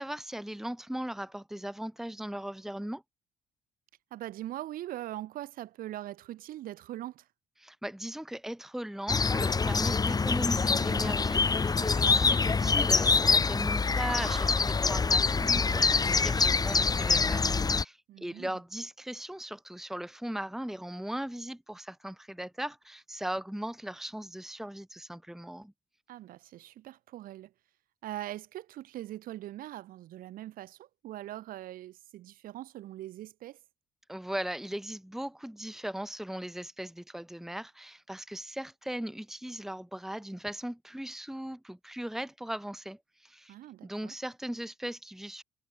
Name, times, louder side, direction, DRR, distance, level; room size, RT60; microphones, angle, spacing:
voice 1, 0.0-3.0 7.6-25.7 34.1-43.5 43.8-45.4, right 1 dB, ahead, 1.5 m, -38 dB
voice 2, 4.1-7.3 18.1-18.6 26.1-27.5 28.0-33.6 43.5-44.1, right 14 dB, 65° right, 4.1 m, -41 dB
sound 1, 9.1-17.8, left 4 dB, 25° left, 0.9 m, -25 dB
hypercardioid pair, 60°, 15 cm